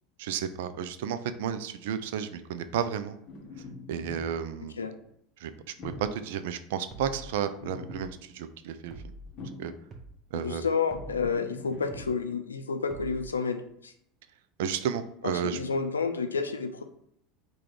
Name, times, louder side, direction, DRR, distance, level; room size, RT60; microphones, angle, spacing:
voice 1, 0.2-3.2 3.9-4.8 5.4-5.5 5.8-9.0 9.6-9.7 10.3-10.6 14.6-15.6, right 8 dB, 60° right, 11 dB, 0.3 m, -32 dB
sound 1, 3.3-5.1 5.8-6.3 7.2-8.3 9.0-10.0 10.9-12.1, left 3 dB, 40° left, 0.8 m, -44 dB
sound 2, 5.9-6.1 6.9-7.3 7.9-8.1 8.9-9.3 9.9-10.1 10.9-11.3 11.9-12.1 12.9-13.3, right 2 dB, 35° right, 0.7 m, -44 dB
voice 2, 10.3-13.9 15.2-16.8, left 5 dB, 75° left, 7 dB, 0.4 m, -30 dB
4.8 x 2.3 x 4.6 m, 0.71 s
figure-of-eight pair, 75°, 0 cm